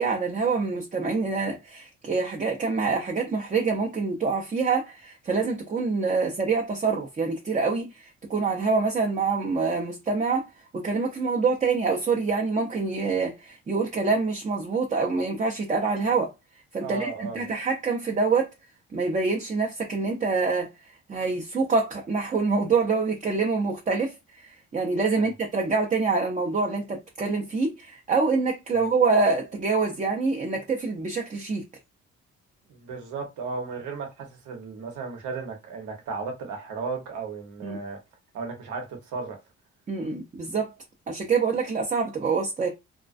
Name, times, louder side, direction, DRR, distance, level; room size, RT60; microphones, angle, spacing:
voice 1, 0.0-10.5 10.7-16.3 16.7-18.5 18.9-20.7 21.1-31.6 37.6-37.8 39.9-40.7 41.1-42.7, right 4 dB, 25° right, 0.5 m, -26 dB
voice 2, 16.8-17.5 25.1-25.3 28.7-28.8 32.7-38.0 38.3-39.4, right 4 dB, 75° right, 0.9 m, -35 dB
2.3 x 2.1 x 2.4 m
cardioid pair, 90°, 30 cm